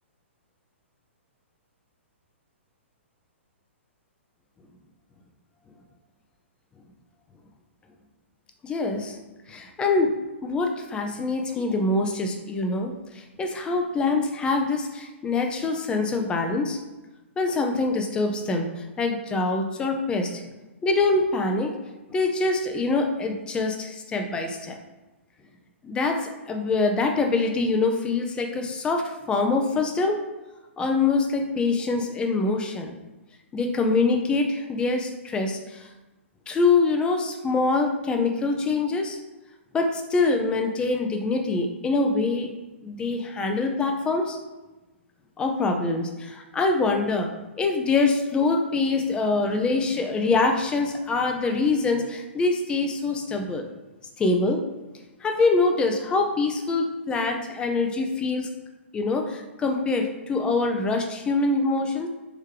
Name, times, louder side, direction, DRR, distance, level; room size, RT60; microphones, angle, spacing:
voice 1, 8.6-9.2 9.5-10.2 10.4-16.8 17.4-18.7 19.0-20.4 20.8-21.7 22.1-24.8 25.8-30.2 30.8-32.9 33.5-35.9 36.5-39.2 39.7-42.5 42.8-44.4 45.4-47.3 47.6-53.7 54.2-54.6 55.2-58.5 58.9-62.1, left 3 dB, 15° left, 3 dB, 0.4 m, -24 dB
3.5 x 3.1 x 3.3 m, 1.1 s
figure-of-eight pair, 115°, 7 cm